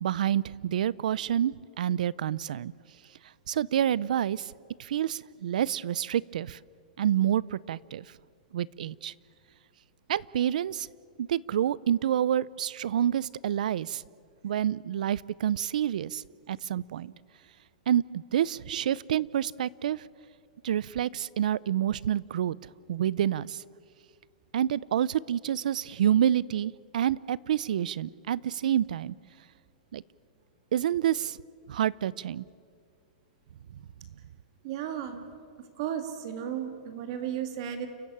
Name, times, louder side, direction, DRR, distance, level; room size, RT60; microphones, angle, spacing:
voice 1, 0.0-2.7 3.5-4.5 4.8-6.6 7.0-8.1 8.5-9.1 10.1-10.9 11.2-14.0 14.4-17.1 17.9-20.0 20.6-23.6 24.5-29.1 29.9-30.0 30.7-31.4 31.7-32.4, right 10 dB, 65° right, 23 dB, 0.5 m, -28 dB
voice 2, 34.6-35.3 35.8-37.9, right 9 dB, 40° right, 8 dB, 1.9 m, -34 dB
29.5 x 14.5 x 8.7 m, 2.1 s
supercardioid pair, 170°, 5 cm